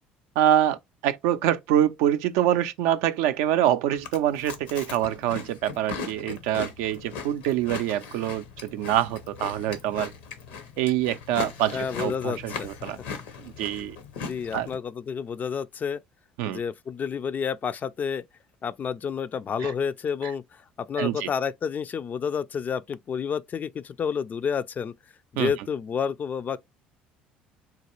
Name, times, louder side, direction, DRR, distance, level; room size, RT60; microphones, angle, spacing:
voice 1, 0.4-10.1 10.8-13.0 13.4-14.0 14.5-14.7 16.4-16.6 19.6-19.7 20.2-20.3 21.0-21.3 25.4-25.5, right 11 dB, 70° right, 0.4 m, -25 dB
Chewing mastication, 3.9-14.7, left 5 dB, 75° left, 0.7 m, -39 dB
voice 2, 11.7-12.7 14.2-16.0 16.5-18.2 18.6-20.4 20.8-24.9 25.3-26.6, left 7 dB, 35° left, 0.3 m, -30 dB
3.9 x 2.3 x 2.9 m
hypercardioid pair, 60°, 5 cm